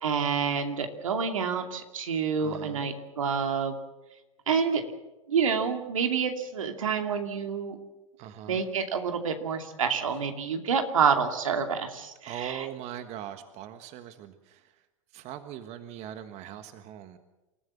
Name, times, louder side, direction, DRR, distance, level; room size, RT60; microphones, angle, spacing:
voice 1, 0.0-3.8 4.5-4.8 5.3-7.8 8.5-12.7, right 6 dB, 80° right, 5 dB, 2.6 m, -28 dB
voice 2, 2.4-2.9 8.2-8.6 12.2-14.8 15.1-17.2, right 10 dB, 40° right, 9 dB, 1.5 m, -41 dB
28.0 x 14.5 x 7.3 m, 1.0 s
hypercardioid pair, 105°, 17 cm